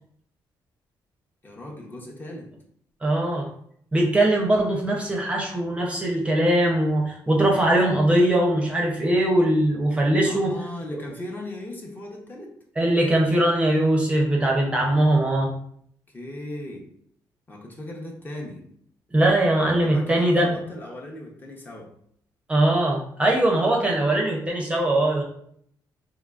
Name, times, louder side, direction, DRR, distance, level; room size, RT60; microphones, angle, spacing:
voice 1, 1.4-2.5 10.2-12.5 16.1-16.9 17.5-18.7 19.8-21.9, left 1 dB, 25° left, -1 dB, 0.8 m, -37 dB
voice 2, 3.0-3.5 3.9-10.5 12.8-15.5 19.1-20.6 22.5-25.2, right 1 dB, 15° right, -1 dB, 0.6 m, -21 dB
3.7 x 3.0 x 2.4 m, 0.66 s
cardioid pair, 125°, 8 cm